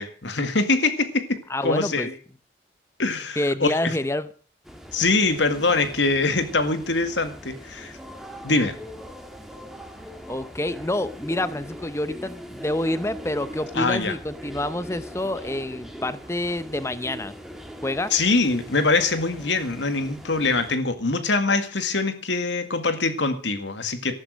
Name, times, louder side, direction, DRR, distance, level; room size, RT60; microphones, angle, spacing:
voice 1, 0.0-2.1 3.0-4.0 4.9-7.9 8.4-8.8 13.7-14.1 18.1-24.2, left 3 dB, 80° left, 9 dB, 2.0 m, -23 dB
voice 2, 1.5-2.1 3.4-4.3 10.3-17.3 17.8-18.1, left 1 dB, 15° left, 14 dB, 0.7 m, -27 dB
sound 1, 4.6-20.7, equal, ahead, 1.8 m, -41 dB
14.0 x 12.0 x 6.3 m, 0.42 s
head